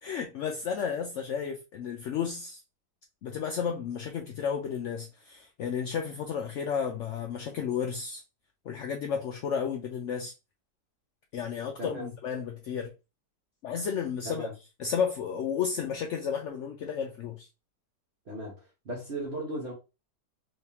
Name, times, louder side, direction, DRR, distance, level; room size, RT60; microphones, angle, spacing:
voice 1, 0.0-2.6 3.2-8.2 8.7-10.3 11.3-12.9 13.6-14.5 14.8-17.5, left 7 dB, 85° left, 0.6 m, -32 dB
voice 2, 18.3-19.7, right 1 dB, 45° right, 1.2 m, -37 dB
3.5 x 3.1 x 2.8 m
omnidirectional pair, 1.8 m